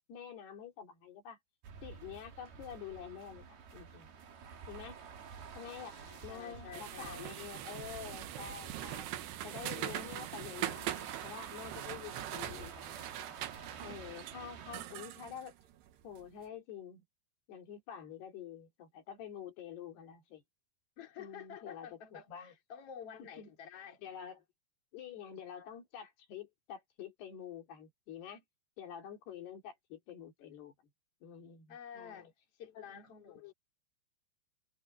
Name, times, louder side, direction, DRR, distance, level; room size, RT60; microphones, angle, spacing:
voice 1, 0.1-1.4 1.8-3.5 3.7-4.1 4.7-5.0 5.6-6.0 6.2-13.3 13.8-15.6 16.0-17.0 17.5-20.4 21.2-22.5 23.4-23.5 24.0-24.4 24.9-28.4 28.8-30.7 31.2-32.3 32.8-32.9 33.3-33.5, left 8 dB, 75° left, 4.9 m, -48 dB
sound 1, 1.6-14.8, right 7 dB, 65° right, 5.0 m, -50 dB
voice 2, 5.5-7.3 21.0-24.0 31.7-32.3 32.6-33.5, left 8 dB, 40° left, 3.8 m, -50 dB
sound 2, 6.7-16.3, right 13 dB, 90° right, 3.4 m, -42 dB
omnidirectional pair, 4.7 m